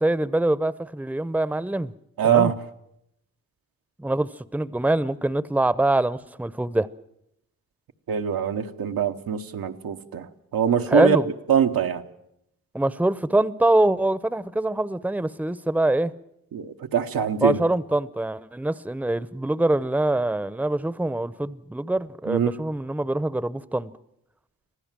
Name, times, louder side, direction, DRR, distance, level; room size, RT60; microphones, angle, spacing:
voice 1, 0.0-1.9 2.2-2.5 4.0-6.9 10.9-11.3 12.7-16.1 17.4-23.9, right 2 dB, 5° right, 0.7 m, -24 dB
voice 2, 2.2-2.5 8.1-11.2 11.5-12.0 16.5-17.6 22.3-22.5, right 7 dB, 90° right, 1.2 m, -23 dB
25.5 x 15.5 x 7.5 m
cardioid pair, 60°, 34 cm